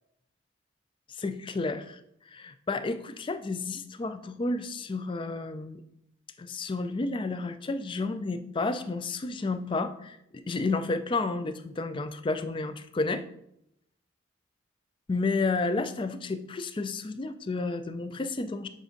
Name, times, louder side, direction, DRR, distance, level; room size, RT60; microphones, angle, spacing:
voice 1, 1.1-2.0 2.3-5.8 6.4-13.2 15.1-18.7, left 3 dB, 25° left, 10 dB, 0.3 m, -31 dB
7.4 x 2.6 x 5.1 m, 0.78 s
head